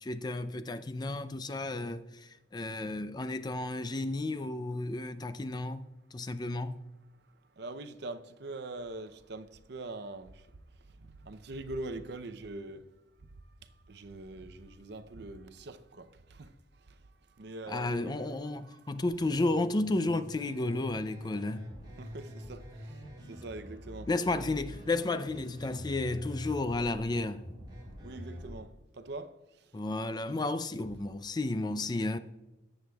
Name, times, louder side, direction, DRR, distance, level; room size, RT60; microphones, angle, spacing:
voice 1, 0.0-6.8 17.7-21.7 24.1-27.5 29.7-32.2, left 2 dB, 25° left, 0.4 m, -32 dB
voice 2, 7.1-13.3 13.6-19.0 22.0-24.1 28.0-29.8, right 2 dB, 65° right, 0.6 m, -44 dB
sound 1, 19.1-28.6, equal, 25° right, 3.3 m, -46 dB
17.5 x 7.8 x 2.3 m
head